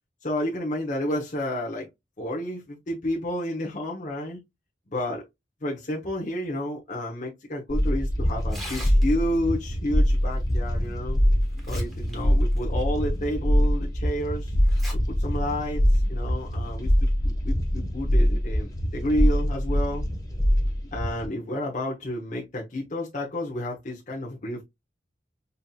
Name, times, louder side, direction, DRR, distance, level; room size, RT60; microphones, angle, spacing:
voice 1, 0.2-1.9 2.2-4.4 4.9-5.2 5.6-11.2 11.7-14.5 15.1-20.0 20.9-24.6, left 1 dB, 40° left, 0.9 m, -30 dB
sound 1, 7.7-21.3, equal, 20° left, 0.9 m, -24 dB
Tearing, 8.4-9.4 10.8-10.9 11.4-12.2 12.5-12.6 13.3-13.4 14.6-14.9 15.3-15.4 16.3-16.5, equal, ahead, 1.2 m, -40 dB
5.4 x 2.7 x 2.3 m
head